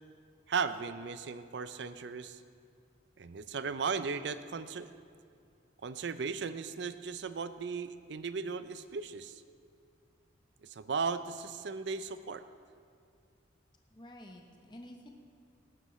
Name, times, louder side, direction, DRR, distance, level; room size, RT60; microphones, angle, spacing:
voice 1, 0.5-2.4 3.2-4.9 5.8-9.4 10.6-12.4, right 5 dB, 65° right, 12 dB, 0.5 m, -36 dB
voice 2, 13.9-15.1, left 1 dB, 25° left, 2 dB, 0.8 m, -50 dB
18.5 x 12.0 x 3.1 m, 2.2 s
head